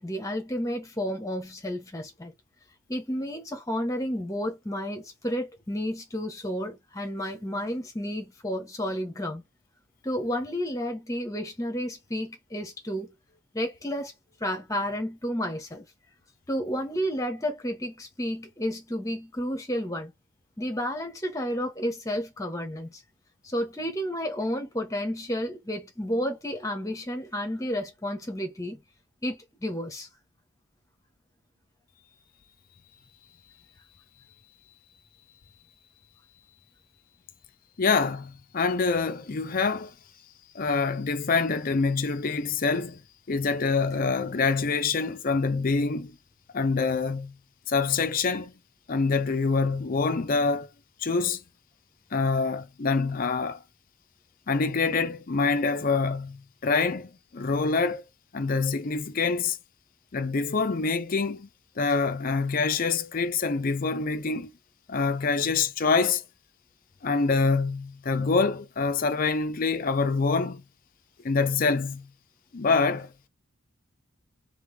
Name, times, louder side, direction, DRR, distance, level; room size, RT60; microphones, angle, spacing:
voice 1, 0.0-2.3 2.9-9.4 10.0-13.1 13.5-14.1 14.4-15.8 16.5-20.1 20.6-23.0 23.4-28.8 29.2-30.1, equal, 15° left, 1.2 m, -31 dB
voice 2, 37.8-39.9 40.5-43.0 43.3-46.1 46.5-47.3 47.7-48.5 48.9-50.7 51.0-51.4 52.1-53.6 54.5-58.0 58.3-59.6 60.1-61.5 61.8-64.5 64.9-66.2 67.0-70.6 71.2-72.1 72.5-73.1, left 4 dB, 40° left, 0.5 m, -25 dB
3.6 x 3.4 x 3.4 m
head